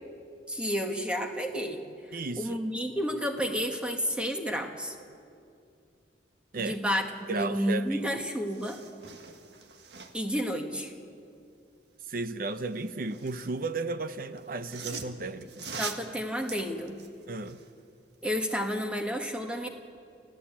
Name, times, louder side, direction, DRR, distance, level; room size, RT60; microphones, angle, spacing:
voice 1, 0.5-4.9 6.6-8.8 10.1-10.9 15.8-17.0 18.2-19.7, equal, 5° right, 1.8 m, -31 dB
voice 2, 2.1-2.6 6.5-6.8 7.3-8.0 12.1-15.7 17.3-17.6, right 3 dB, 50° right, 0.8 m, -34 dB
sound 1, 7.7-7.8 8.1-10.4 12.5-13.6 14.4-17.7 18.1-18.2, right 5 dB, 70° right, 1.6 m, -43 dB
29.0 x 15.0 x 8.7 m
head